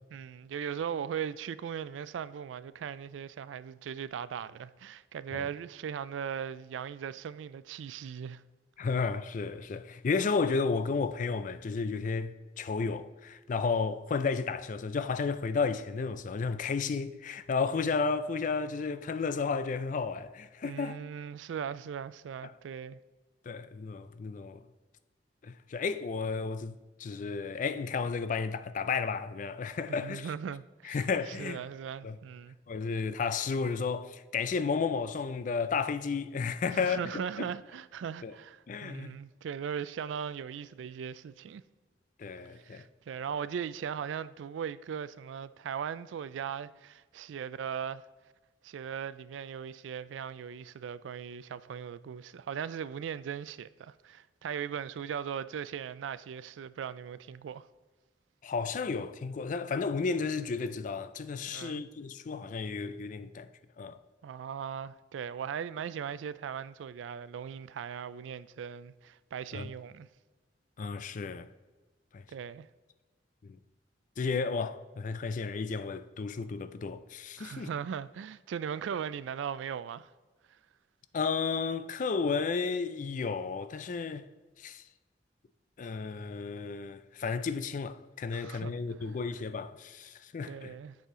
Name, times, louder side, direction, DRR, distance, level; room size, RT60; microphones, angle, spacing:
voice 1, 0.1-8.4 20.6-23.0 30.0-32.6 36.7-41.6 42.6-48.0 48.6-57.7 61.5-61.8 64.2-70.1 72.3-72.7 77.4-80.1 88.3-88.8 90.5-91.0, right 7 dB, 80° right, 0.3 m, -38 dB
voice 2, 8.8-21.0 23.5-24.6 25.4-30.3 30.8-31.6 32.0-32.2 32.7-37.0 37.4-37.5 38.2-38.3 38.7-39.2 42.2-42.9 58.4-63.5 63.8-64.0 69.5-69.7 70.8-71.5 72.1-72.2 73.4-73.6 74.2-77.7 81.1-84.2 84.6-84.8 85.8-90.7, left 5 dB, 45° left, 0.4 m, -33 dB
8.0 x 6.5 x 3.7 m
head